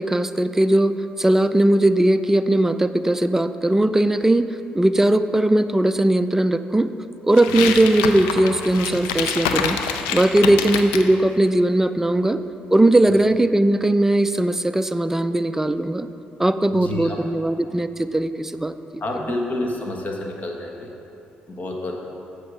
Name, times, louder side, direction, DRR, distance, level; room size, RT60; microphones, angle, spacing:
voice 1, 0.0-6.9 7.2-9.8 10.1-12.4 12.7-16.1 16.4-18.7, right 1 dB, 10° right, 10 dB, 0.4 m, -19 dB
sound 1, 7.3-11.1, left 7 dB, 90° left, 0.4 m, -26 dB
voice 2, 16.7-17.2 19.0-20.9 21.5-22.0, left 1 dB, 45° left, 1 dB, 1.4 m, -29 dB
7.7 x 6.9 x 5.0 m, 2.8 s
hypercardioid pair, 55°, 4 cm